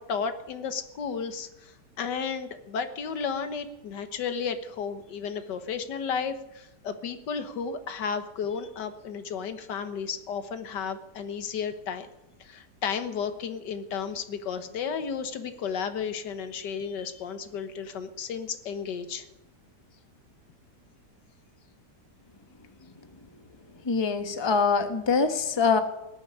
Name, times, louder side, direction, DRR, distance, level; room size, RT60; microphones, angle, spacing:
voice 1, 0.0-12.1 12.4-19.3, left 6 dB, 85° left, 10 dB, 1.8 m, -33 dB
voice 2, 23.8-25.8, left 5 dB, 20° left, 8 dB, 1.0 m, -24 dB
19.5 x 7.0 x 9.8 m, 0.95 s
omnidirectional pair, 1.8 m